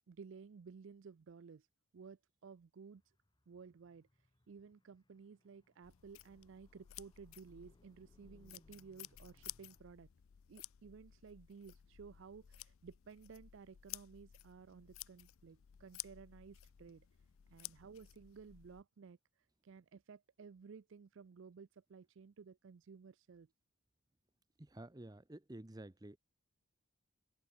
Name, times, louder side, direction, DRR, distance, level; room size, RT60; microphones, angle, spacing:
voice 1, 0.1-1.7 1.9-3.0 3.5-4.1 4.5-10.1 10.5-17.1 17.5-19.2 19.6-23.5, right 5 dB, 55° right, 0.4 m, -56 dB
Car, 2.9-9.8, left 1 dB, 20° left, 1.1 m, -73 dB
sound 1, 5.8-18.8, left 15 dB, 70° left, 0.4 m, -54 dB
voice 2, 24.6-26.2, right 1 dB, 15° right, 0.7 m, -51 dB
head